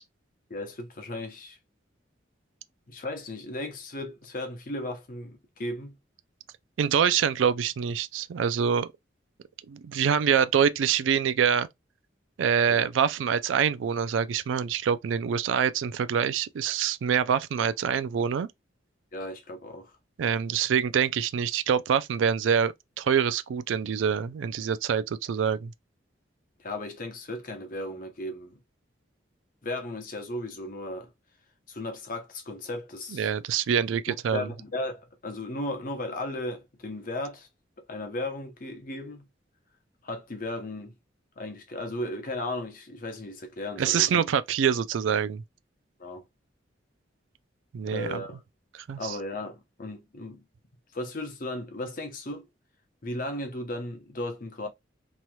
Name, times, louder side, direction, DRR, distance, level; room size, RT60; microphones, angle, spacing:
voice 1, 0.5-1.6 2.9-5.9 12.7-12.9 19.1-19.9 26.6-28.6 29.6-31.1 31.7-33.3 34.3-37.5 37.9-39.3 40.0-41.0 41.4-44.3 46.0-46.2 47.9-48.4 49.0-50.4 50.9-52.5 53.0-54.7, left 1 dB, 45° left, 0.8 m, -35 dB
voice 2, 6.8-8.9 9.7-11.7 12.4-18.5 20.2-25.7 33.1-34.5 43.8-45.4 47.7-48.2 48.7-49.2, right 7 dB, 90° right, 0.3 m, -25 dB
3.1 x 2.8 x 2.2 m
head